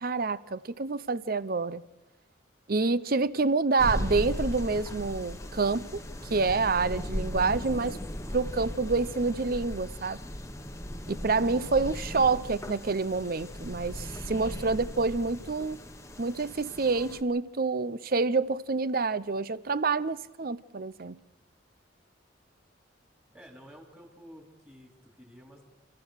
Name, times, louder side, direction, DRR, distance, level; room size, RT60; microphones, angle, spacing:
voice 1, 0.0-1.8 2.7-8.0 8.3-10.2 11.1-15.8 16.2-21.2, right 4 dB, 50° right, 0.7 m, -28 dB
sound 1, 3.8-17.2, left 1 dB, 15° left, 1.2 m, -37 dB
voice 2, 23.3-25.6, equal, 10° right, 3.8 m, -51 dB
29.0 x 14.5 x 6.5 m
head